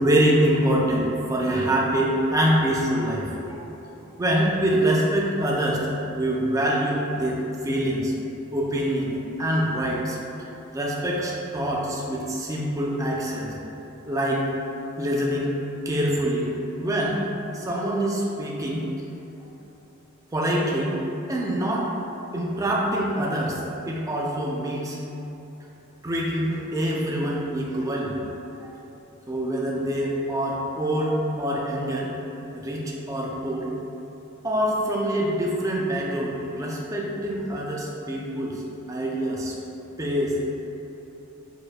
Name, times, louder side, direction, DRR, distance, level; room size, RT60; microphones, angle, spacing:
voice 1, 0.0-3.6 4.0-5.8 6.2-8.1 8.5-10.2 10.7-13.6 14.1-14.5 15.0-15.6 15.9-17.2 17.5-18.8 20.3-21.0 21.3-21.9 22.3-23.6 23.9-25.0 26.0-28.2 28.6-28.7 29.3-32.1 32.5-33.7 34.4-38.6 38.9-39.6 40.0-40.4, right 1 dB, 15° right, -3 dB, 0.4 m, -25 dB
5.0 x 4.3 x 2.2 m, 2.9 s
head